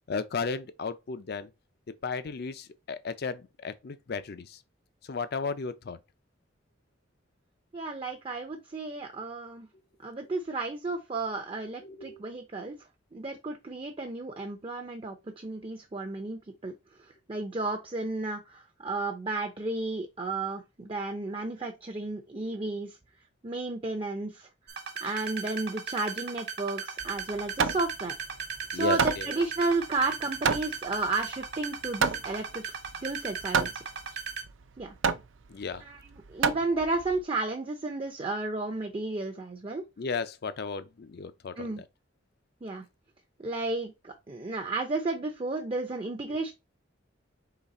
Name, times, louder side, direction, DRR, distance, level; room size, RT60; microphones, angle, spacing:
voice 1, 0.1-1.5 2.0-4.6 5.0-6.0 11.8-12.2 28.7-29.3 35.5-35.8 40.0-41.8, left 4 dB, 55° left, 0.5 m, -34 dB
voice 2, 7.7-9.7 10.0-12.7 13.1-16.7 17.0-23.0 23.4-24.5 25.0-28.1 28.7-32.6 33.0-33.7 34.8-35.0 35.8-39.8 41.6-41.8 42.6-42.8 43.4-46.5, right 3 dB, 30° right, 0.6 m, -33 dB
sound 1, 24.7-34.4, right 6 dB, 55° right, 1.3 m, -37 dB
Hammer, 27.0-37.2, right 6 dB, 80° right, 0.5 m, -31 dB
4.0 x 3.2 x 4.1 m
head